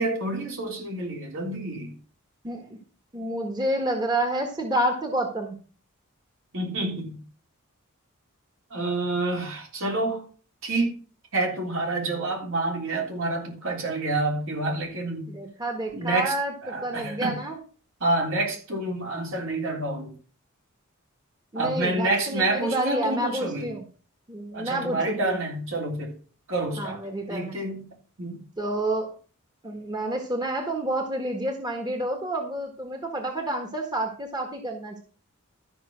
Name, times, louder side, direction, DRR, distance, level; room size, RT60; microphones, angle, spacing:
voice 1, 0.0-2.0 6.5-7.2 8.7-10.2 10.6-11.0 11.3-15.4 15.9-16.4 16.6-17.4 18.0-20.1 21.6-23.7 24.5-26.1 26.5-27.0 27.3-28.4, right 2 dB, 65° right, 3.5 m, -28 dB
voice 2, 2.4-2.8 3.1-5.6 15.3-17.6 21.5-23.8 24.3-25.4 26.8-27.6 28.6-29.1 29.6-35.0, right 1 dB, 20° right, 1.5 m, -29 dB
13.0 x 5.6 x 6.2 m
head